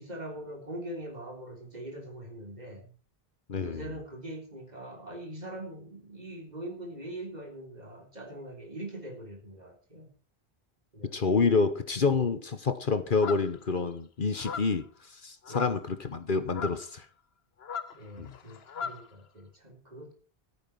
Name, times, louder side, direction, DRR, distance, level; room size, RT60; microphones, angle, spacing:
voice 1, 0.0-2.9 3.6-10.1 10.9-11.2 15.5-15.8 17.9-20.1, right 1 dB, 45° right, 3.7 m, -42 dB
voice 2, 3.5-3.8 11.1-14.9 15.1-17.0 18.2-18.3, left 4 dB, 55° left, 1.2 m, -28 dB
sound 1, 13.2-13.6 14.4-14.8 15.4-15.9 16.5-16.9 17.6-19.1, left 6 dB, 75° left, 1.2 m, -38 dB
14.5 x 8.8 x 6.0 m
omnidirectional pair, 1.0 m